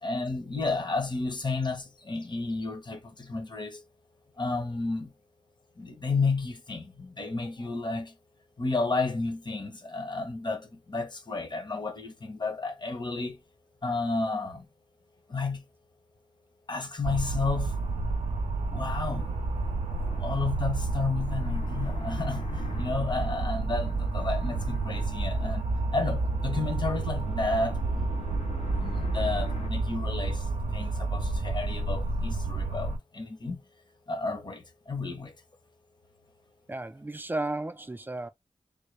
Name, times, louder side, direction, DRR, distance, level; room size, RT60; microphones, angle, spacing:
voice 1, 0.0-3.8 4.4-5.1 5.8-8.1 8.6-13.4 13.8-14.7 15.3-15.6 16.7-17.7 18.7-19.3 20.2-25.6 25.9-27.8 28.8-30.5 30.7-33.6 34.1-35.3, left 3 dB, 40° left, 0.9 m, -32 dB
sound 1, 17.0-33.0, right 3 dB, 80° right, 0.5 m, -30 dB
sound 2, 19.0-29.7, left 4 dB, 60° left, 0.6 m, -46 dB
voice 2, 36.7-38.3, right 2 dB, 15° right, 0.4 m, -33 dB
3.5 x 2.2 x 3.2 m
wide cardioid pair, 70°, 12 cm